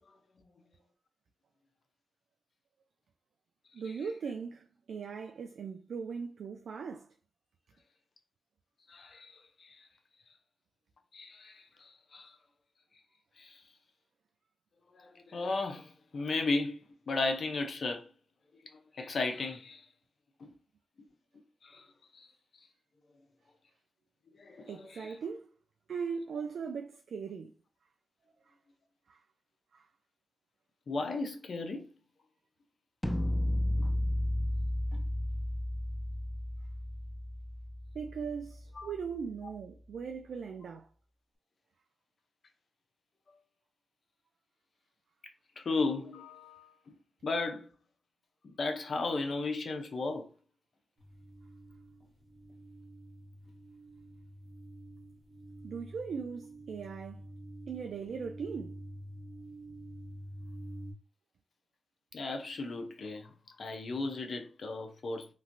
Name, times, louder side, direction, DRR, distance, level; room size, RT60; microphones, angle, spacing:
voice 1, 3.7-7.1 24.7-25.5 25.9-27.5 29.1-29.2 29.7-29.8 37.9-40.9 55.6-57.3 57.7-58.8, right 6 dB, 80° right, 0.3 m, -39 dB
voice 2, 8.9-9.9 11.1-12.4 13.4-13.6 14.9-18.1 18.9-19.9 20.4-20.5 21.6-21.9 22.1-22.3 24.3-25.2 30.9-31.9 33.8-33.9 34.9-35.0 38.8-38.9 45.6-46.7 47.2-47.7 48.6-50.3 62.1-65.3, left 3 dB, 65° left, 0.7 m, -35 dB
sound 1, 33.0-39.0, left 1 dB, 15° left, 0.4 m, -33 dB
sound 2, 51.0-60.9, right 1 dB, 45° right, 1.2 m, -48 dB
3.0 x 2.6 x 2.6 m
cardioid pair, 65°, 0 cm